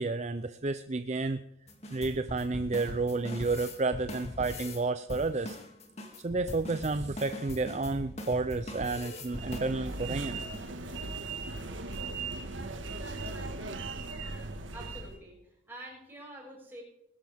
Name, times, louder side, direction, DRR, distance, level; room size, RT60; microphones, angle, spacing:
voice 1, 0.0-1.4 1.9-5.6 6.2-10.4, right 3 dB, 35° right, 11 dB, 0.5 m, -31 dB
sound 1, 1.7-4.8 5.1-10.1 10.5-10.6 10.9-11.0 11.4-11.6 11.9-12.0 12.4-12.6 13.1-13.6, left 1 dB, 35° left, 2.4 m, -41 dB
sound 2, 9.3-15.2, right 3 dB, 75° right, 1.6 m, -38 dB
voice 2, 13.2-14.0 14.7-16.8, right 1 dB, 10° right, -3 dB, 6.5 m, -48 dB
20.5 x 11.5 x 3.6 m, 0.82 s
head